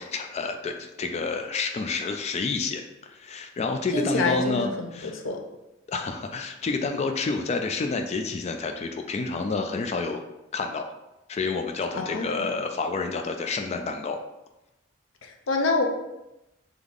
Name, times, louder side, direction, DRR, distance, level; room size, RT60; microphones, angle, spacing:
voice 1, 0.0-5.2 5.9-10.3 10.5-10.9 11.3-14.2, left 4 dB, 35° left, 5 dB, 0.3 m, -29 dB
voice 2, 3.9-5.4 12.0-12.5 15.2-15.8, left 3 dB, 80° left, 3 dB, 0.6 m, -27 dB
3.5 x 3.5 x 3.7 m, 0.93 s
head